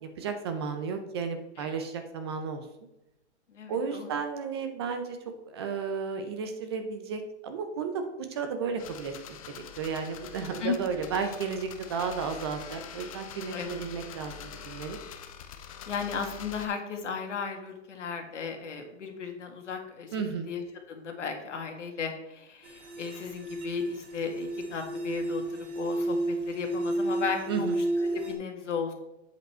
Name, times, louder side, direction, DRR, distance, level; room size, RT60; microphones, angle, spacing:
voice 1, 0.0-2.7 3.7-5.2 5.5-15.0 20.1-20.5 27.5-27.8, right 5 dB, 25° right, 7 dB, 0.5 m, -33 dB
voice 2, 3.5-4.1 10.6-10.8 13.5-13.9 15.9-20.1 20.5-27.7 28.0-28.9, left 5 dB, 90° left, 4 dB, 1.9 m, -35 dB
sound 1, 8.8-16.7, left 8 dB, 30° left, 0.6 m, -45 dB
sound 2, 22.6-28.3, right 1 dB, 70° right, 2.1 m, -32 dB
7.9 x 5.2 x 4.4 m, 0.92 s
hypercardioid pair, 160°, 35 cm